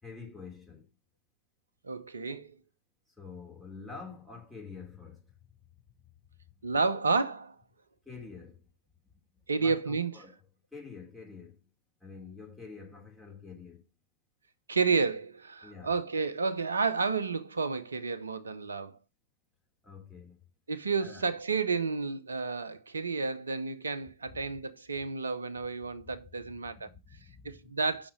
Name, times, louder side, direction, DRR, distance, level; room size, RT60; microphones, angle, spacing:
voice 1, 0.0-0.9 3.2-5.2 8.1-8.7 9.3-10.3 10.7-11.6 12.0-13.8 15.6-15.9 19.8-20.4 21.0-21.3 26.7-27.7, left 5 dB, 5° left, 3.7 m, -47 dB
voice 2, 1.8-2.5 6.6-7.6 9.5-10.1 14.7-19.0 20.7-26.9 27.4-28.1, right 4 dB, 75° right, 0.8 m, -31 dB
7.2 x 6.1 x 4.9 m
figure-of-eight pair, 90°, 0 cm